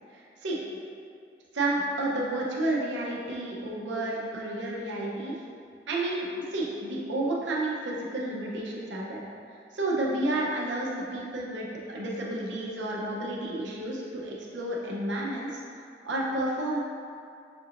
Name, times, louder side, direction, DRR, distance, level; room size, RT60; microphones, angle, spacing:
voice 1, 0.1-0.6 1.5-5.3 5.9-9.2 9.5-16.8, right 1 dB, 85° right, -3 dB, 0.7 m, -31 dB
5.9 x 2.9 x 2.5 m, 2.4 s
head